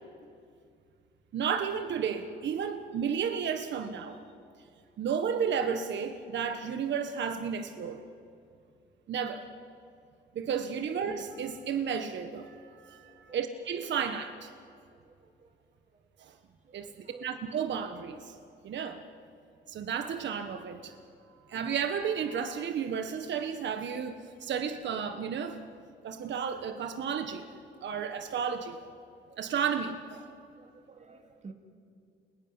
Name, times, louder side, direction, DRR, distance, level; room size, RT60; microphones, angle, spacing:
voice 1, 1.3-4.2 5.0-8.0 9.1-9.4 10.3-14.5 16.2-16.3 16.7-18.3 18.6-19.0 19.7-21.0 21.5-25.6 26.0-27.5 27.8-28.8 29.4-30.2, right 7 dB, 65° right, 7 dB, 1.5 m, -33 dB
voice 2, 13.0-13.4 15.0-15.5 16.8-17.3 19.7-19.8 30.6-31.5, right 4 dB, 35° right, 3 dB, 2.9 m, -49 dB
29.5 x 20.5 x 9.8 m, 2.4 s
cardioid pair, 90°, 20 cm